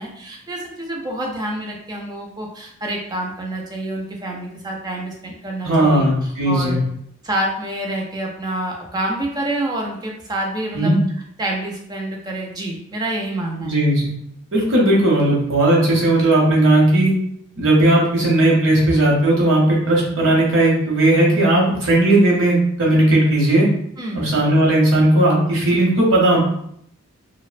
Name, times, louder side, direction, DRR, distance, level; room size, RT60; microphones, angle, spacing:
voice 1, 0.0-6.8 7.2-11.0 11.4-13.8 24.0-24.3, right 1 dB, 20° right, 0 dB, 0.3 m, -27 dB
voice 2, 5.6-6.8 10.7-11.0 13.6-14.1 14.5-17.1 17.6-23.7 24.1-26.4, right 1 dB, 60° right, -3 dB, 0.8 m, -16 dB
2.5 x 2.0 x 2.4 m, 0.70 s
head